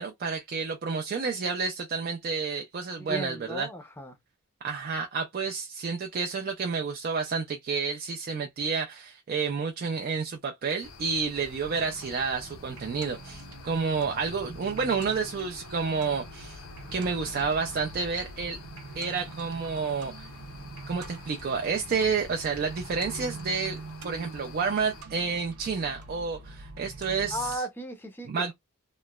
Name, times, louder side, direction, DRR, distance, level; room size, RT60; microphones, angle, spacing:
voice 1, 0.0-3.7 4.6-16.6 16.9-18.6 19.0-20.3 20.9-27.6 28.3-28.5, right 5 dB, 40° right, 0.3 m, -30 dB
voice 2, 2.9-4.2 27.3-28.5, equal, 10° left, 0.5 m, -36 dB
sound 1, 10.8-25.0, left 4 dB, 70° left, 0.5 m, -47 dB
sound 2, 11.6-27.6, right 3 dB, 90° right, 0.6 m, -45 dB
3.0 x 2.0 x 2.2 m
head